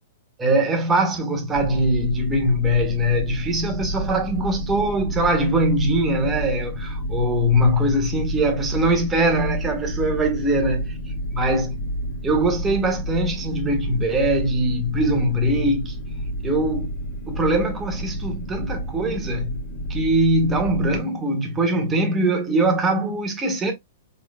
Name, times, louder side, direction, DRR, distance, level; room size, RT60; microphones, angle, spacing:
voice 1, 0.4-10.9 11.3-11.7 12.2-15.9 16.4-16.9 17.3-19.5 19.9-23.7, right 1 dB, 15° right, 1.5 m, -22 dB
sound 1, 1.5-21.0, equal, 25° left, 2.7 m, -30 dB
4.8 x 3.9 x 2.2 m
hypercardioid pair, 130°, 0 cm